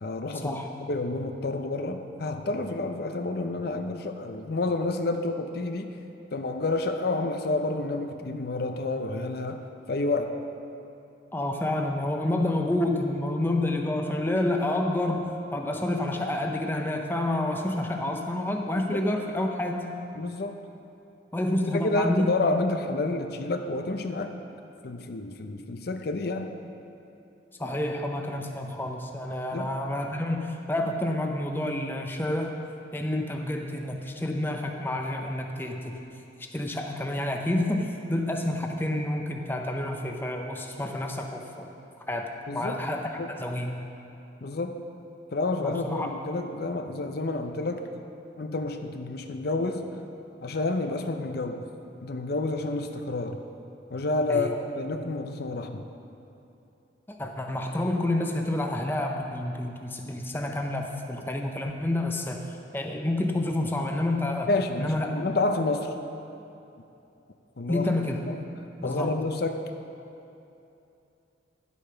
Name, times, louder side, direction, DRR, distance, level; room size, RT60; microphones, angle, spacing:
voice 1, 0.0-0.6 0.9-6.0 6.3-9.6 9.9-10.4 18.7-19.0 20.2-20.6 21.7-24.3 24.8-26.5 29.5-29.7 42.5-42.8 43.2-43.3 44.4-44.8 45.3-47.9 48.4-49.9 50.4-51.6 52.0-53.4 53.9-54.5 54.8-55.9 64.5-65.9 67.6-67.9 68.3-68.4 68.8-69.6, left 2 dB, 55° left, 6 dB, 0.5 m, -29 dB
voice 2, 11.3-20.0 21.3-22.3 27.6-32.6 32.9-36.0 36.5-41.8 42.1-43.0 43.4-43.8 45.6-46.1 54.3-54.6 57.2-62.5 62.7-64.5 64.8-65.3 67.7-68.3 68.8-69.2, left 1 dB, 10° left, 2 dB, 0.6 m, -29 dB
11.0 x 8.2 x 5.6 m, 2.8 s
head